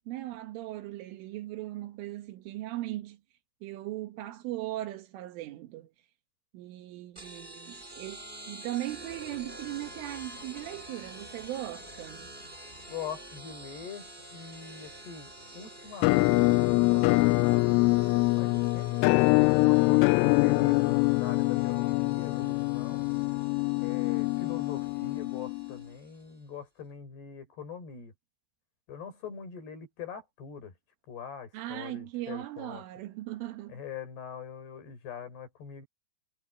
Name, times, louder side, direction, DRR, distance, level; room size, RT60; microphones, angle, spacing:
voice 1, 0.1-3.2 3.6-5.9 6.5-12.3 31.5-33.8, right 15 dB, 80° right, 4.1 m, -38 dB
sound 1, 7.2-26.3, right 1 dB, 15° right, 2.1 m, -48 dB
voice 2, 12.9-17.8 18.4-23.0 23.8-28.1 28.9-30.7 31.1-32.8 33.7-35.9, left 7 dB, 55° left, 6.6 m, -43 dB
Musical instrument, 16.0-25.8, left 25 dB, 85° left, 3.0 m, -24 dB
omnidirectional pair, 5.7 m